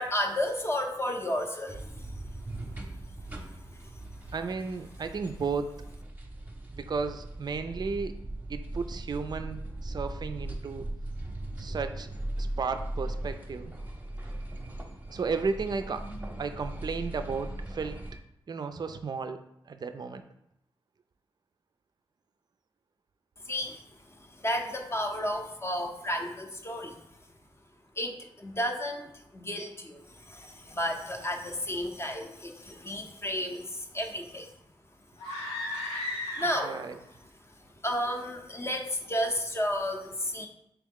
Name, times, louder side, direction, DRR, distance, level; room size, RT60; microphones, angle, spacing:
voice 1, 0.0-2.3 3.4-4.2 23.4-27.0 28.0-34.5 35.3-35.4 35.7-36.8 37.8-40.5, equal, 25° left, 3 dB, 0.6 m, -33 dB
sound 1, 1.7-18.2, right 1 dB, 20° right, 0.7 m, -39 dB
voice 2, 4.3-5.7 6.7-8.1 8.5-10.8 11.6-12.1 12.4-13.7 15.1-16.0 16.4-18.0 18.5-19.4 19.7-20.2 36.6-37.0, right 4 dB, 45° right, 8 dB, 0.3 m, -33 dB
sound 2, 35.2-36.9, left 1 dB, 90° left, 1.0 m, -35 dB
3.6 x 2.9 x 3.6 m, 0.78 s
cardioid pair, 45°, 10 cm